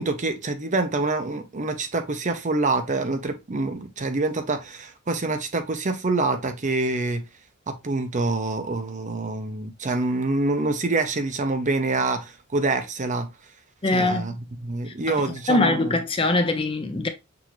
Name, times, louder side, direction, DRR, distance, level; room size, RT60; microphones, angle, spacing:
voice 1, 0.0-7.2 7.7-13.3 13.9-14.3 14.6-16.0, right 3 dB, 35° right, 0.7 m, -26 dB
voice 2, 13.8-14.4 14.9-17.1, left 2 dB, 25° left, 0.5 m, -23 dB
6.1 x 2.8 x 3.0 m
head